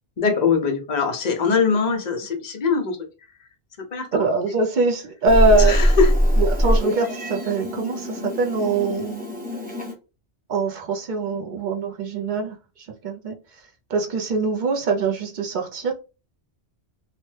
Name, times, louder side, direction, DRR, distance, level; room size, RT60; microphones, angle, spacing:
voice 1, 0.2-3.0 3.8-4.2 5.6-6.1, left 5 dB, 45° left, 0.7 m, -22 dB
voice 2, 4.1-5.8 6.4-9.2 10.5-12.6 13.0-13.4 13.9-15.9, right 3 dB, 55° right, 0.6 m, -23 dB
Meow, 5.3-9.9, equal, 10° right, 0.7 m, -22 dB
2.8 x 2.1 x 3.1 m
omnidirectional pair, 1.1 m